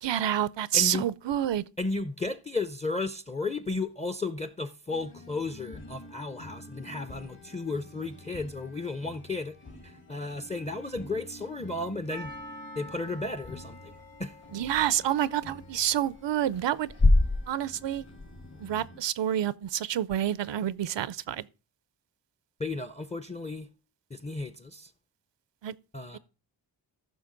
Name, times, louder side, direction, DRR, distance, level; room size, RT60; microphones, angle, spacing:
voice 1, 0.0-1.6 14.5-16.9 17.5-18.0 18.6-21.5 25.6-25.7 26.1-26.2, right 11 dB, 85° right, 0.5 m, -28 dB
voice 2, 0.7-1.1 1.8-9.6 9.8-12.3 12.8-14.3 22.6-23.7 24.1-24.9 25.9-26.2, left 3 dB, 15° left, 0.5 m, -34 dB
sound 1, 4.9-19.0, left 1 dB, 55° left, 2.1 m, -49 dB
Percussion, 12.1-17.0, left 1 dB, 90° left, 2.5 m, -48 dB
sound 2, 12.9-18.9, left 2 dB, 35° left, 1.1 m, -29 dB
14.0 x 5.8 x 3.8 m
wide cardioid pair, 105°, 43 cm